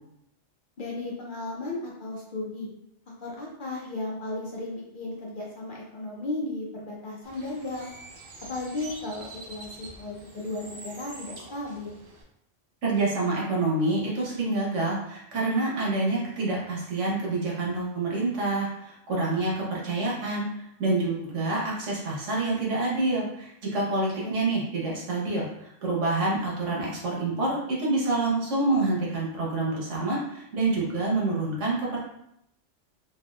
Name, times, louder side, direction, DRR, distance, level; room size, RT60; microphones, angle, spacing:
voice 1, 0.8-2.7 3.2-7.9 8.5-12.0, left 2 dB, 50° left, -3 dB, 0.7 m, -35 dB
Bird, 7.2-12.2, right 2 dB, 55° right, 0.7 m, -45 dB
voice 2, 12.8-32.0, right 2 dB, 75° right, -3 dB, 1.3 m, -27 dB
3.4 x 2.7 x 2.2 m, 0.77 s
omnidirectional pair, 1.3 m